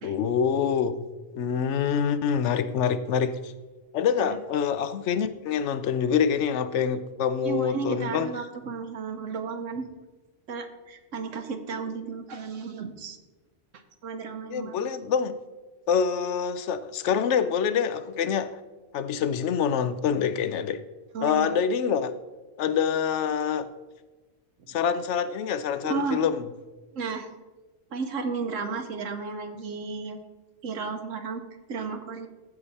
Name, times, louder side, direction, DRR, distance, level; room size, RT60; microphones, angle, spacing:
voice 1, 0.0-1.0 1.3-3.5 3.9-8.3 14.5-15.3 15.9-18.6 18.9-20.8 21.2-22.1 22.6-23.7 24.7-26.4, left 7 dB, 70° left, 13 dB, 0.9 m, -26 dB
voice 2, 7.4-9.8 10.5-13.2 14.0-14.8 21.1-21.5 25.8-26.2 26.9-27.3 27.9-30.2 30.6-31.4 31.7-32.3, right 5 dB, 90° right, 6 dB, 1.3 m, -33 dB
14.5 x 5.0 x 4.1 m, 1.2 s
omnidirectional pair, 1.3 m